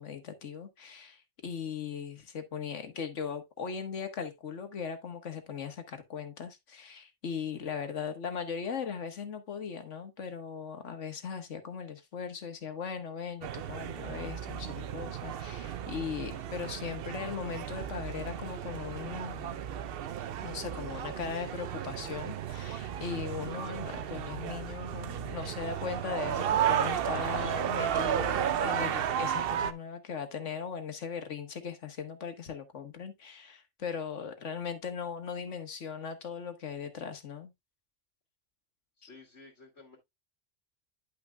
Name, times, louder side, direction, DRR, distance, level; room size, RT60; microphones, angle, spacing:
voice 1, 0.0-19.6 20.4-37.5 39.0-39.1, left 6 dB, 90° left, 1.6 m, -39 dB
sound 1, 13.4-29.7, right 9 dB, 60° right, 0.7 m, -33 dB
voice 2, 39.0-40.0, left 3 dB, 70° left, 2.6 m, -53 dB
10.5 x 5.9 x 2.2 m
omnidirectional pair, 1.2 m